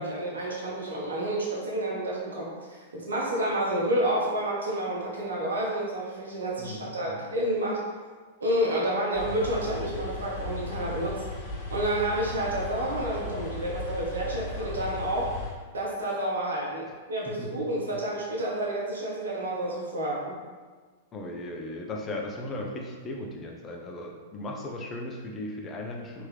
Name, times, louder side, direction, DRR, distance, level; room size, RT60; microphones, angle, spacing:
voice 1, 0.0-7.8 8.4-11.2 11.7-15.3 15.7-20.4, right 1 dB, 75° right, -3 dB, 1.0 m, -29 dB
voice 2, 6.6-7.2 17.2-17.6 21.1-26.3, left 1 dB, 25° left, 0 dB, 0.7 m, -37 dB
sound 1, 9.1-15.5, left 3 dB, 50° left, 1.1 m, -36 dB
3.5 x 3.0 x 3.3 m, 1.4 s
hypercardioid pair, 105°, 0 cm